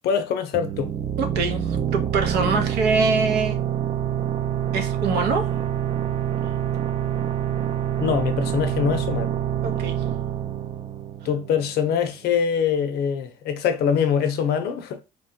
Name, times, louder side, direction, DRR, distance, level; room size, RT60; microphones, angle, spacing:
voice 1, 0.0-0.9 8.0-9.4 11.2-15.0, left 7 dB, 70° left, 0.6 m, -23 dB
sound 1, 0.5-11.9, right 10 dB, 35° right, 0.4 m, -26 dB
voice 2, 1.2-3.6 4.7-5.6 9.6-10.0, right 4 dB, 80° right, 0.7 m, -24 dB
3.0 x 2.2 x 2.7 m
cardioid pair, 110°, 17 cm